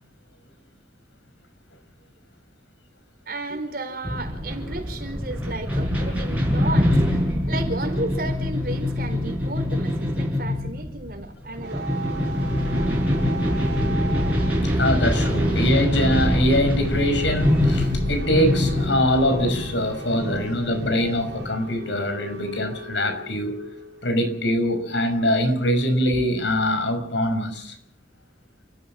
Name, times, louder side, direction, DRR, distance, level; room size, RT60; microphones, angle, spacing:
voice 1, 3.3-11.9, right 2 dB, 55° right, 5 dB, 4.7 m, -33 dB
sound 1, 4.0-21.6, left 1 dB, 10° right, 7.0 m, -24 dB
sound 2, 11.6-25.9, right 2 dB, 80° right, 4.6 m, -38 dB
voice 2, 14.8-23.5 24.0-27.8, equal, 85° left, 8 dB, 5.9 m, -23 dB
29.5 x 14.5 x 7.3 m, 0.62 s
head